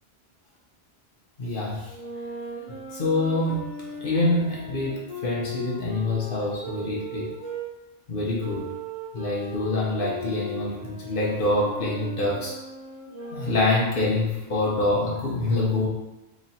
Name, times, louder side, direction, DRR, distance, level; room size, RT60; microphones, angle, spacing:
voice 1, 1.4-1.9 2.9-7.3 8.1-8.7 9.1-12.6 13.2-15.9, left 2 dB, 60° left, -5 dB, 1.0 m, -26 dB
sound 1, 1.9-7.7 8.4-13.9, equal, 35° right, 0.7 m, -38 dB
3.0 x 3.0 x 4.1 m, 0.99 s
omnidirectional pair, 1.1 m